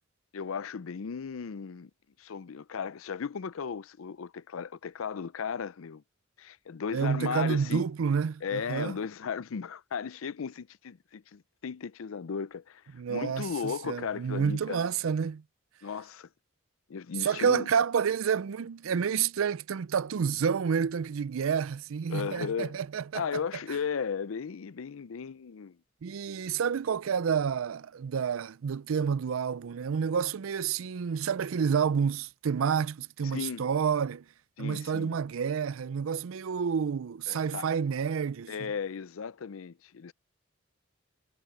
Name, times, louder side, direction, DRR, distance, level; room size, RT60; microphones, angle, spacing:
voice 1, 0.3-1.9 2.2-6.0 6.4-7.8 8.4-12.8 13.1-14.8 15.8-16.3 16.9-17.7 22.1-22.8 23.1-25.8 33.3-33.7 34.6-35.1 37.3-37.7 38.5-40.1, left 6 dB, 85° left, 0.5 m, -36 dB
voice 2, 6.9-9.0 12.9-15.4 17.2-23.4 26.0-34.2 34.6-38.5, right 6 dB, 90° right, 0.4 m, -29 dB
head